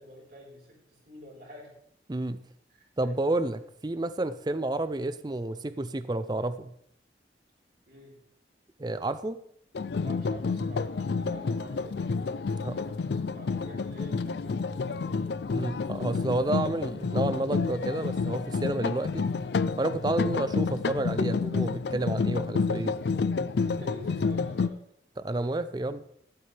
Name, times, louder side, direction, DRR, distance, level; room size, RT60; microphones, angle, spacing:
voice 1, 0.0-1.7 2.7-2.9 7.9-8.1 10.0-15.4 23.6-24.8, equal, 55° right, -2 dB, 4.7 m, -48 dB
voice 2, 3.0-6.7 8.8-9.4 12.6-12.8 15.5-19.3 19.8-23.0 25.2-26.0, right 2 dB, 25° right, 13 dB, 0.4 m, -30 dB
sound 1, 9.7-24.7, left 4 dB, 70° left, 0.4 m, -29 dB
15.5 x 12.0 x 3.4 m, 0.71 s
head